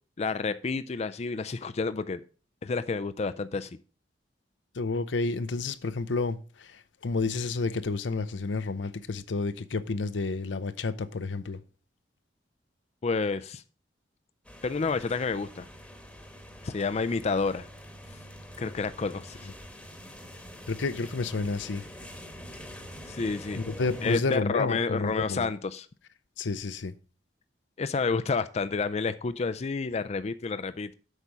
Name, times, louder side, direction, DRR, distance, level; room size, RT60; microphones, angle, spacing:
voice 1, 0.2-2.2 2.6-3.7 13.0-13.6 14.6-15.7 16.6-17.7 18.6-19.4 23.0-23.6 24.0-25.9 27.8-31.0, left 4 dB, 35° left, 0.4 m, -29 dB
voice 2, 4.7-11.6 20.7-21.9 23.6-25.5 26.4-26.9, left 3 dB, 85° left, 0.7 m, -30 dB
sound 1, 14.4-24.2, equal, 5° left, 1.2 m, -45 dB
8.2 x 5.5 x 6.0 m
head